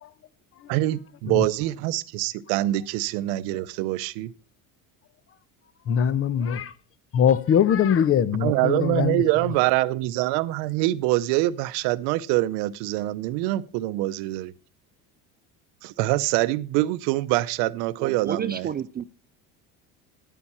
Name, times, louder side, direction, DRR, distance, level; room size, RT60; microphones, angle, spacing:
voice 1, 0.7-4.3 8.4-14.5 15.8-18.7, right 17 dB, 80° right, 0.7 m, -25 dB
voice 2, 5.9-6.7 7.1-9.2, left 8 dB, 35° left, 0.8 m, -22 dB
voice 3, 18.0-19.0, right 8 dB, 25° right, 0.4 m, -30 dB
11.0 x 8.8 x 4.3 m
supercardioid pair, 110°, 38 cm